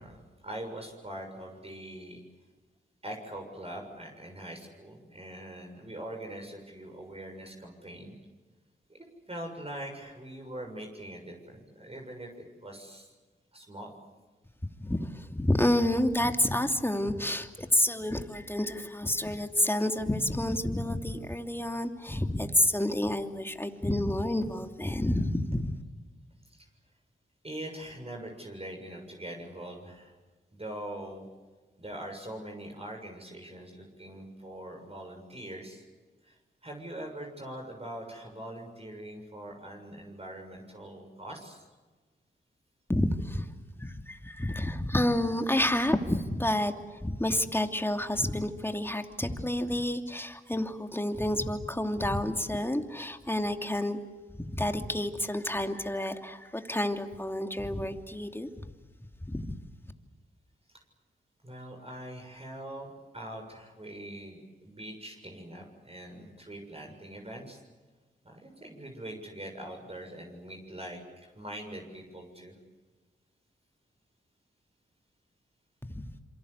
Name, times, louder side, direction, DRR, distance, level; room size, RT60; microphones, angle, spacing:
voice 1, 0.0-2.2 3.0-8.2 8.9-13.1 13.5-13.9 26.4-26.7 27.4-30.1 30.5-31.3 31.8-35.8 36.2-41.7 61.4-67.6 68.2-72.6, right 1 dB, 30° right, 2 dB, 6.9 m, -43 dB
voice 2, 14.8-25.7 42.9-43.5 43.8-46.7 47.0-54.0 54.4-58.5 59.2-59.6 75.9-76.1, left 1 dB, 10° left, 6 dB, 2.8 m, -29 dB
27.5 x 24.0 x 8.3 m, 1.3 s
cardioid pair, 45°, 20 cm